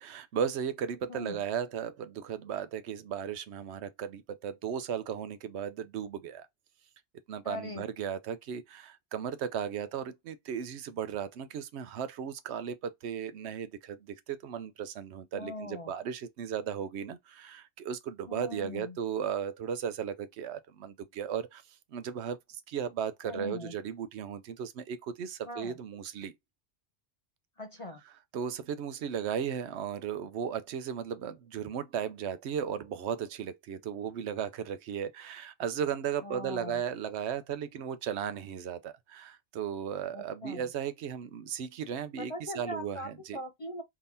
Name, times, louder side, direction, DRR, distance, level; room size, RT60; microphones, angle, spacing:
voice 1, 0.0-6.5 7.3-26.3 28.3-43.4, right 8 dB, 85° right, 0.9 m, -36 dB
voice 2, 1.1-1.4 7.4-7.8 15.3-15.9 18.3-19.0 23.2-23.7 25.5-25.8 27.6-28.0 36.2-36.8 40.1-40.7 42.2-43.8, left 1 dB, 45° left, 0.5 m, -41 dB
3.7 x 2.9 x 2.5 m
omnidirectional pair, 1.1 m